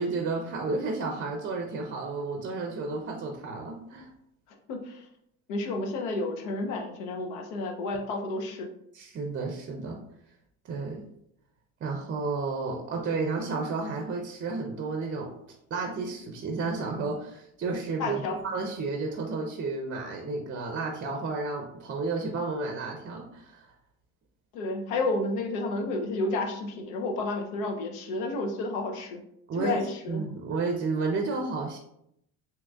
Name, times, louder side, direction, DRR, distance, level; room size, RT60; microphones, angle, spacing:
voice 1, 0.0-4.1 8.9-10.0 10.6-11.1 11.8-15.3 15.7-23.7 29.5-29.8 30.1-31.8, right 3 dB, 30° right, 2 dB, 0.5 m, -32 dB
voice 2, 4.7-5.1 5.5-8.7 18.0-18.4 24.5-29.2 29.5-30.2, left 2 dB, 85° left, 4 dB, 0.7 m, -31 dB
3.6 x 2.9 x 2.3 m, 0.75 s
supercardioid pair, 85°, 41 cm